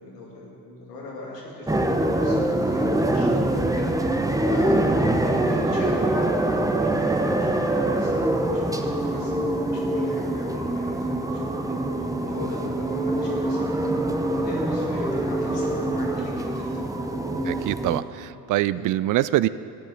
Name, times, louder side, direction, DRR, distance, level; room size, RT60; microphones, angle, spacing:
voice 1, 0.0-3.4 3.7-3.9 4.4-8.1 8.5-9.3 9.7-17.0 18.7-18.9, left 2 dB, 85° left, -3 dB, 2.4 m, -38 dB
sound 1, 1.7-18.0, right 1 dB, 5° right, 0.9 m, -24 dB
voice 2, 17.4-19.5, right 15 dB, 45° right, 16 dB, 0.4 m, -24 dB
13.0 x 9.2 x 6.2 m, 2.6 s
hypercardioid pair, 55°, 46 cm